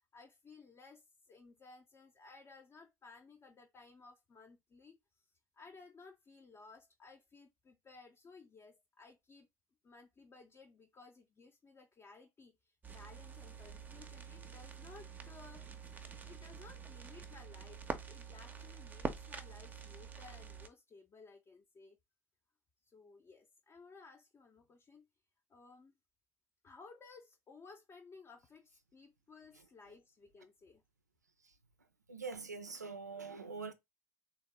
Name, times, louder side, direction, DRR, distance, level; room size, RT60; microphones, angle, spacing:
voice 1, 0.1-9.5 9.8-22.0 22.8-25.1 25.5-26.0 26.6-30.8, left 4 dB, 30° left, 0.5 m, -58 dB
sound 1, 12.8-20.7, right 5 dB, 20° right, 0.5 m, -46 dB
voice 2, 32.1-33.7, right 4 dB, 85° right, 0.4 m, -44 dB
3.4 x 2.1 x 3.2 m
figure-of-eight pair, 60°, 9 cm